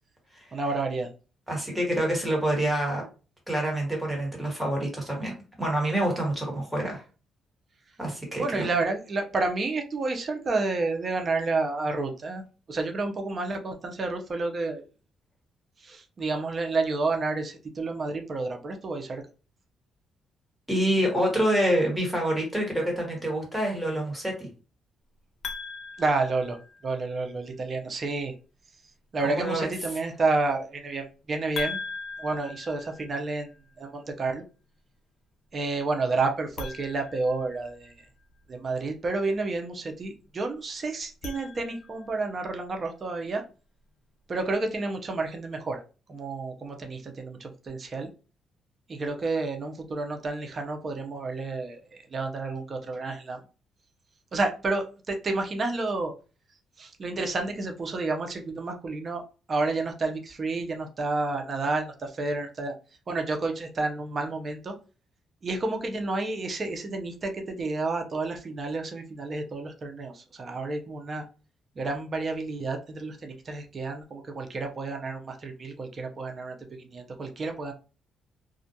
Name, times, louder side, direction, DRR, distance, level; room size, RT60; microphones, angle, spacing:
voice 1, 0.5-1.1 8.4-12.4 12.7-14.8 15.8-19.2 26.0-26.6 26.8-28.3 29.1-31.8 32.2-33.5 33.8-34.4 35.5-37.9 38.5-43.4 44.3-45.8 46.1-48.1 48.9-53.4 54.3-56.1 56.8-62.7 63.1-64.7 65.4-71.3 71.8-77.7, right 3 dB, 40° right, 4 dB, 0.5 m, -30 dB
voice 2, 1.5-3.0 3.5-7.0 8.0-8.7 20.7-24.5 29.2-29.7, right 1 dB, 5° right, -1 dB, 1.3 m, -27 dB
sound 1, 25.4-27.1 31.5-33.6 36.5-38.1 41.0-42.2, left 4 dB, 60° left, 0.6 m, -39 dB
2.4 x 2.2 x 2.7 m, 0.34 s
cardioid pair, 90°, 0 cm